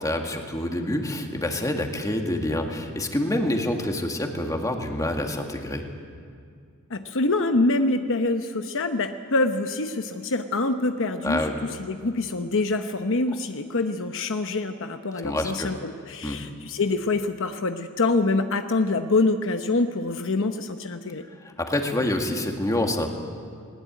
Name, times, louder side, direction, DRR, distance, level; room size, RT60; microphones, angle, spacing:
voice 1, 0.0-5.8 11.2-11.5 15.2-15.7 16.2-16.4 21.4-23.1, left 1 dB, 15° left, 3 dB, 2.0 m, -27 dB
voice 2, 6.9-21.2, left 2 dB, 60° left, 7 dB, 0.9 m, -25 dB
19.5 x 19.5 x 9.3 m, 2.2 s
head